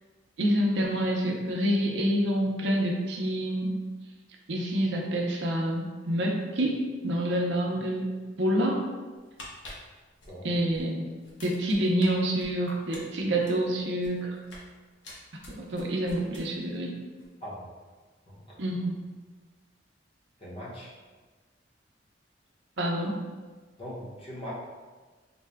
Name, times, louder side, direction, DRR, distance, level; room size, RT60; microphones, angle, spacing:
voice 1, 0.4-3.8 4.5-8.1 8.4-8.9 10.4-11.0 11.4-14.4 15.5-16.9 18.6-18.9 22.8-23.2, right 1 dB, 70° right, 0 dB, 0.6 m, -27 dB
sound 1, 9.2-10.8 11.2-12.1 12.4-14.7 15.0-16.8 17.1-17.3, left 1 dB, 80° left, 0.9 m, -47 dB
voice 2, 18.3-18.6 20.4-20.9 23.8-24.5, equal, 30° left, -5 dB, 0.9 m, -40 dB
4.0 x 2.2 x 3.4 m, 1.4 s
head